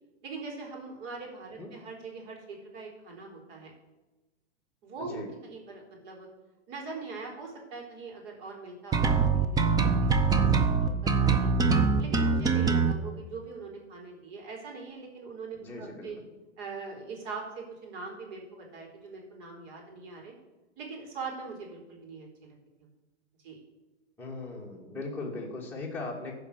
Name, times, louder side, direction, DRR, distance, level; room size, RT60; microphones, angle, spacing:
voice 1, 0.2-3.7 4.8-6.3 6.7-9.8 10.3-11.5 12.0-16.2 16.6-20.3 20.8-22.6 23.4-23.6, right 4 dB, 45° right, -1 dB, 4.1 m, -42 dB
voice 2, 5.0-5.3 15.6-16.1 24.2-26.3, left 3 dB, 5° left, -4 dB, 2.3 m, -38 dB
sound 1, 8.9-12.9, right 5 dB, 10° right, 0.6 m, -23 dB
15.0 x 5.3 x 6.7 m, 1.1 s
hypercardioid pair, 135°, 35 cm